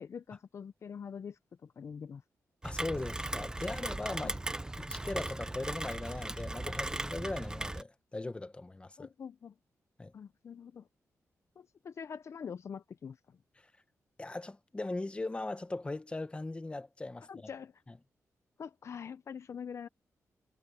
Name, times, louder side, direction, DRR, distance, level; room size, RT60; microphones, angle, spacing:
voice 1, 0.0-2.2 4.2-4.4 9.0-9.5 10.1-10.8 11.6-13.2 17.3-17.7 18.6-19.9, left 7 dB, 55° left, 0.7 m, -44 dB
voice 2, 2.6-4.4 4.8-9.1 10.0-10.1 14.2-17.5 17.9-18.0, left 2 dB, 20° left, 1.1 m, -39 dB
Rain, 2.6-7.8, right 2 dB, 15° right, 0.9 m, -38 dB
wide cardioid pair, 115°, 6 cm